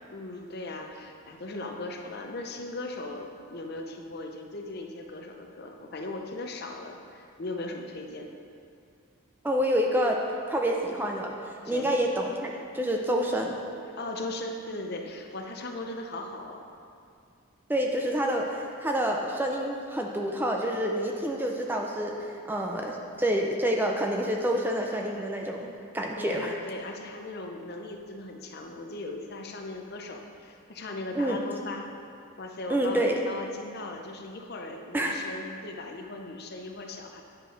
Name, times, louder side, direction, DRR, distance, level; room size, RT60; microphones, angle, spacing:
voice 1, 0.1-8.3 11.6-11.9 13.9-16.7 26.2-31.9 32.4-37.2, left 2 dB, 45° left, 3 dB, 0.6 m, -38 dB
voice 2, 9.4-10.2 10.5-13.6 17.7-25.7 25.9-26.6 31.1-31.4 32.7-33.2 34.9-35.2, equal, 10° right, 1 dB, 0.4 m, -28 dB
9.9 x 5.1 x 5.1 m, 2.4 s
head